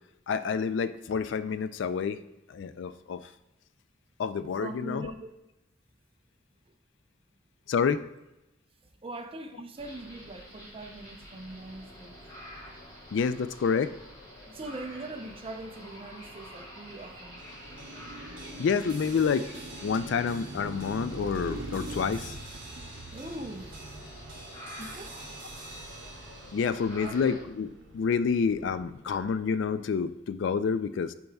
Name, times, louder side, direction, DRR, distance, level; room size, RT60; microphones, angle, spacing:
voice 1, 0.3-2.2 2.5-3.2 4.2-5.1 7.7-8.0 13.1-13.9 18.6-19.5 19.8-22.4 26.5-31.1, left 6 dB, 70° left, 13 dB, 0.3 m, -28 dB
voice 2, 4.6-5.3 9.0-12.2 13.7-13.9 14.4-17.4 23.1-23.9 24.8-25.2 26.4-26.6 27.0-27.1, right 2 dB, 30° right, 6 dB, 0.6 m, -41 dB
sound 1, 9.8-27.4, equal, 20° left, 2.3 m, -48 dB
sound 2, 17.4-29.9, right 2 dB, 45° right, 2.1 m, -49 dB
Car passing by, 17.4-29.6, right 2 dB, 85° right, 0.7 m, -44 dB
10.5 x 4.5 x 2.3 m, 0.94 s
head